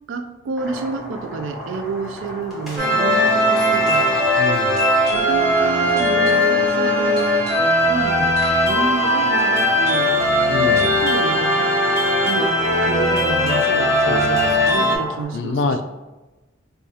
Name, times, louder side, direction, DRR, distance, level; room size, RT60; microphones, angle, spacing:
voice 1, 0.1-4.1 5.1-7.2 7.9-8.4 8.6-10.2 10.8-11.7 12.2-12.5 12.8-15.8, right 4 dB, 80° right, 8 dB, 0.3 m, -29 dB
sound 1, 0.6-15.2, left 1 dB, ahead, 0.7 m, -36 dB
sound 2, 2.8-15.0, left 1 dB, 50° right, 1.1 m, -18 dB
voice 2, 4.4-4.8 10.5-10.9 14.1-14.6 15.3-15.8, left 3 dB, 65° left, 7 dB, 0.3 m, -25 dB
4.7 x 2.3 x 2.7 m, 1.1 s
head